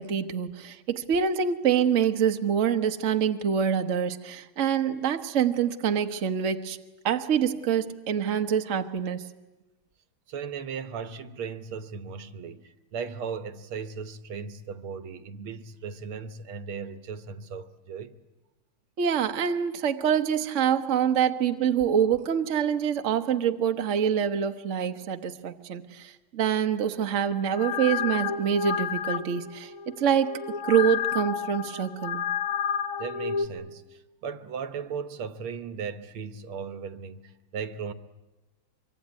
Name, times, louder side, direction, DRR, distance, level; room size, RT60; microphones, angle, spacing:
voice 1, 0.0-6.8 7.0-9.3 19.0-32.2, right 8 dB, 45° right, 1.2 m, -26 dB
voice 2, 10.3-18.2 33.0-37.9, right 6 dB, 80° right, 2.0 m, -37 dB
sound 1, 27.3-33.5, left 7 dB, 75° left, 2.3 m, -31 dB
24.5 x 24.0 x 9.6 m
omnidirectional pair, 2.3 m